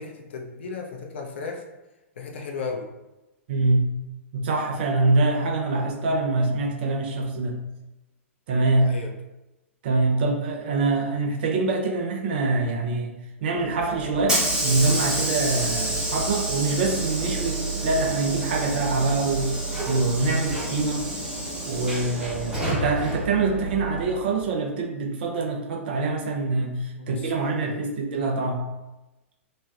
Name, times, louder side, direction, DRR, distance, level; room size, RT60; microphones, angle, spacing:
voice 1, 0.0-1.6 2.2-2.8 8.8-9.1 27.0-27.9, left 4 dB, 55° left, 1 dB, 0.4 m, -35 dB
voice 2, 3.5-3.9 4.3-7.6 8.5-8.9 9.8-19.5 19.9-21.1 21.6-28.7, right 3 dB, 45° right, 0 dB, 0.5 m, -25 dB
Hiss / Sliding door, 13.6-24.4, right 2 dB, 10° right, 0.8 m, -29 dB
3.1 x 2.2 x 2.3 m, 1.0 s
figure-of-eight pair, 105°, 7 cm